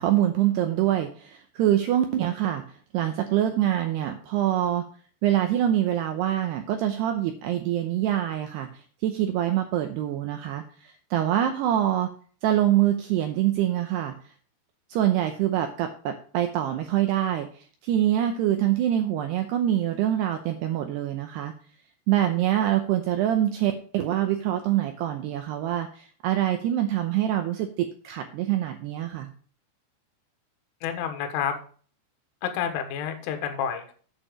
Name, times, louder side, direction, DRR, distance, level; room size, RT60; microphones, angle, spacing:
voice 1, 0.0-2.6 2.9-4.8 5.2-8.7 9.0-12.1 12.4-14.1 14.9-17.5 17.8-21.5 22.1-29.3, right 12 dB, 85° right, 6 dB, 2.4 m, -25 dB
voice 2, 30.8-31.5 32.4-33.9, left 8 dB, 80° left, 6 dB, 3.8 m, -29 dB
8.9 x 7.1 x 5.0 m, 0.43 s
omnidirectional pair, 5.6 m